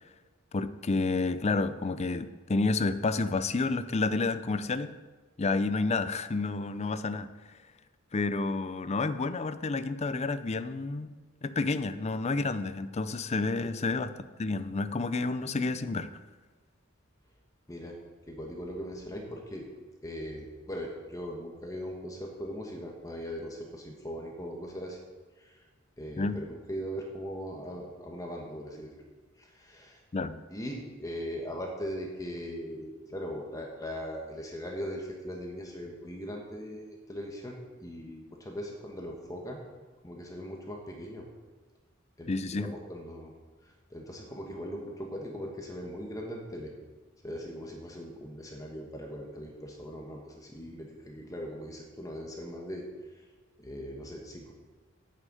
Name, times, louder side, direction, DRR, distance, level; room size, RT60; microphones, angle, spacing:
voice 1, 0.5-5.0 5.4-7.3 8.1-11.1 11.4-16.1 26.2-26.4 30.1-30.4 42.3-42.7, left 3 dB, 30° left, 13 dB, 0.5 m, -30 dB
voice 2, 18.3-19.7 20.0-25.0 25.4-25.6 26.0-28.9 29.4-30.0 30.5-39.6 40.0-41.3 42.2-43.3 43.9-46.7 47.2-52.9 53.6-54.5, equal, 15° left, 0 dB, 1.2 m, -40 dB
9.2 x 6.6 x 7.7 m, 1.4 s
head